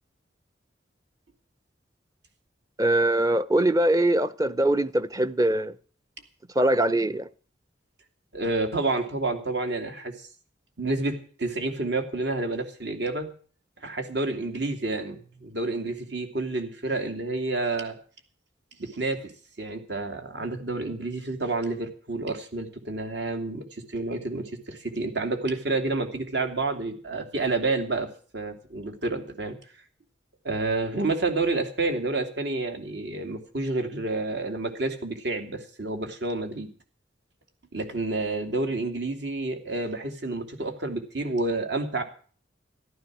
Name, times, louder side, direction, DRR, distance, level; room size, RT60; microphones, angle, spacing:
voice 1, 2.8-5.7 6.6-7.3, right 1 dB, 20° right, 0.7 m, -22 dB
voice 2, 8.3-10.1 10.8-13.3 13.8-18.0 18.8-19.3 19.6-29.5 30.4-36.7 37.7-42.0, right 2 dB, 65° right, 2.7 m, -29 dB
14.5 x 12.0 x 6.2 m
head